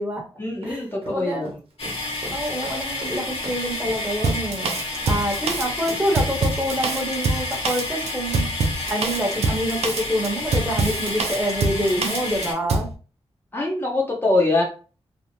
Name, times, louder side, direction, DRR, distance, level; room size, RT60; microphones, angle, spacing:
voice 1, 0.4-1.6 13.5-14.6, left 2 dB, 20° left, -3 dB, 0.6 m, -23 dB
sound 1, 0.6-6.0, right 2 dB, 65° right, 0.8 m, -38 dB
voice 2, 1.1-1.4 2.3-4.7 5.0-8.5 8.9-12.9, equal, 15° right, -1 dB, 0.9 m, -26 dB
sound 2, 1.8-12.5, left 2 dB, 65° left, 1.1 m, -30 dB
Drum kit, 4.2-12.9, right 3 dB, 85° right, 0.4 m, -25 dB
2.5 x 2.0 x 2.8 m, 0.37 s
wide cardioid pair, 95°, 11 cm